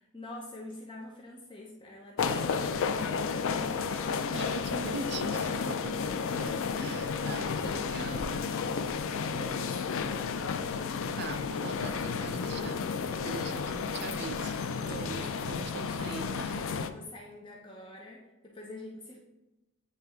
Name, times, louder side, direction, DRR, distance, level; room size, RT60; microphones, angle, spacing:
voice 1, 0.0-4.5 8.0-8.6 9.3-10.9 14.9-15.8 16.9-19.2, left 1 dB, 25° left, -2 dB, 0.7 m, -46 dB
sound 1, 2.2-16.9, left 5 dB, 65° left, 0.4 m, -32 dB
voice 2, 4.3-6.0 6.4-8.5 9.9-10.1 11.2-12.8 13.2-16.6, right 4 dB, 50° right, 10 dB, 0.4 m, -42 dB
8.9 x 3.3 x 3.5 m, 0.99 s
head